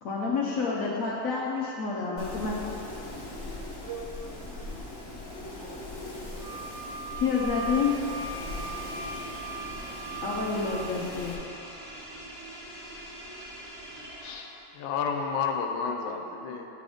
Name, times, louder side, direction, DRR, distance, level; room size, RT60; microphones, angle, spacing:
voice 1, 0.0-2.6 7.2-7.9 10.2-11.4, left 5 dB, 70° left, -4 dB, 0.8 m, -28 dB
voice 2, 1.3-2.4 2.8-2.9 3.8-4.5, right 4 dB, 75° right, -5 dB, 0.6 m, -45 dB
Wind, 2.2-11.3, left 2 dB, 45° left, 1.0 m, -40 dB
sound 1, 3.3-14.8, equal, 35° right, 0.6 m, -46 dB
Wind instrument woodwind instrument, 6.4-10.7, right 4 dB, 55° right, 1.2 m, -38 dB
voice 3, 14.2-16.7, left 6 dB, 85° left, 3 dB, 1.4 m, -31 dB
10.0 x 3.8 x 3.5 m, 2.9 s
omnidirectional pair, 2.1 m